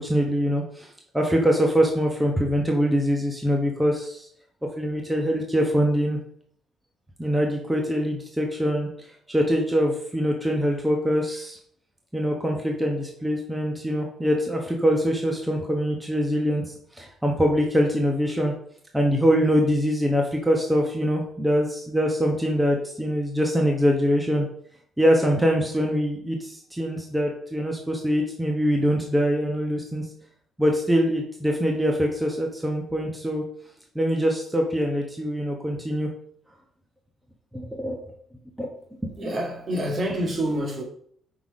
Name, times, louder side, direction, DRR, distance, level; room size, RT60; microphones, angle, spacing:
voice 1, 0.0-4.3 4.6-6.2 7.2-11.6 12.1-18.5 18.9-24.5 25.0-30.0 30.6-33.4 33.9-36.1 37.5-38.0 38.6-38.7, equal, 10° right, 1.0 m, -23 dB
voice 2, 39.2-40.8, right 1 dB, 50° right, 2.0 m, -27 dB
5.8 x 3.9 x 4.8 m
cardioid pair, 90°, 0 cm